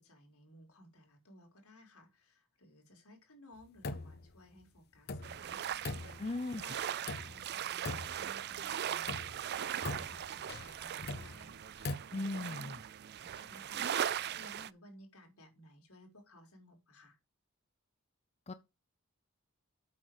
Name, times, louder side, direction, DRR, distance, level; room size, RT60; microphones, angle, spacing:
voice 1, 0.0-11.8 12.1-12.8 13.2-17.2, left 1 dB, 80° left, 4.3 m, -58 dB
sound 1, 3.6-4.3 4.6-4.7 5.1-6.6 7.1-7.6 7.8-8.6 9.0-12.0, left 2 dB, 50° left, 0.9 m, -42 dB
sound 2, 5.2-14.7, right 9 dB, 50° right, 0.4 m, -39 dB
voice 2, 6.2-6.6 12.1-12.8 18.5-18.6, left 2 dB, 30° left, 0.6 m, -37 dB
8.5 x 6.5 x 5.0 m
head